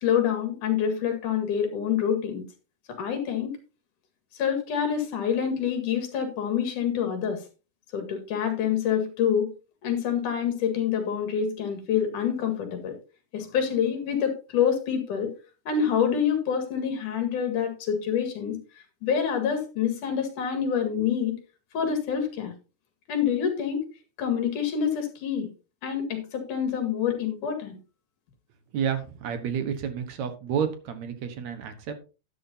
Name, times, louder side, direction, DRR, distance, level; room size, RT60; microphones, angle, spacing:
voice 1, 0.0-2.4 2.9-3.6 4.3-7.4 7.9-9.5 9.8-12.9 13.3-15.3 15.7-18.6 19.0-21.3 21.7-22.5 23.1-23.8 24.2-25.5 25.8-27.8, left 8 dB, 65° left, 6 dB, 3.4 m, -26 dB
voice 2, 28.7-32.0, right 8 dB, 60° right, 8 dB, 2.3 m, -30 dB
12.5 x 10.0 x 2.8 m, 0.31 s
omnidirectional pair, 4.0 m